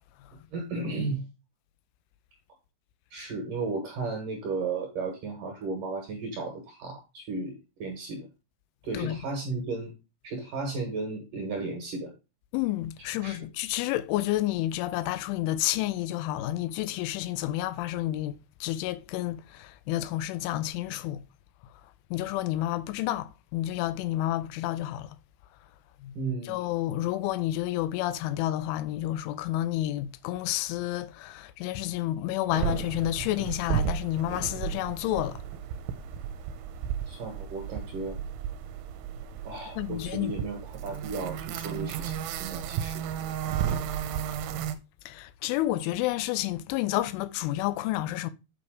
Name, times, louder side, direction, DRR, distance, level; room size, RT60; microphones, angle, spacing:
voice 1, 0.5-1.2 3.1-7.5 7.8-8.3 8.8-9.9 10.2-12.1 13.2-13.4 26.2-26.6 37.1-38.2 39.4-43.0, right 3 dB, 60° right, 2.4 m, -34 dB
voice 2, 12.5-21.2 22.1-25.2 26.0-26.1 26.5-35.4 39.8-40.3 45.1-48.3, left 14 dB, 85° left, 3.0 m, -30 dB
sound 1, 32.5-44.7, right 9 dB, 80° right, 2.9 m, -34 dB
8.5 x 4.8 x 4.8 m
omnidirectional pair, 5.6 m